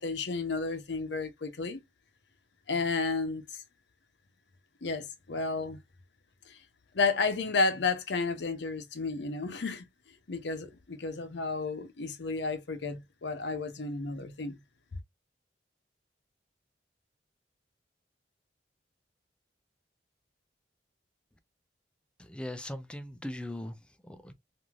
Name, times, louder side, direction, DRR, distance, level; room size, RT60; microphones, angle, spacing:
voice 1, 0.0-1.8 2.7-3.6 4.8-5.8 6.5-6.6 6.9-9.8 10.3-14.6, left 4 dB, 70° left, 0.7 m, -32 dB
voice 2, 22.2-24.3, left 1 dB, 5° left, 0.4 m, -40 dB
3.2 x 2.6 x 2.3 m
head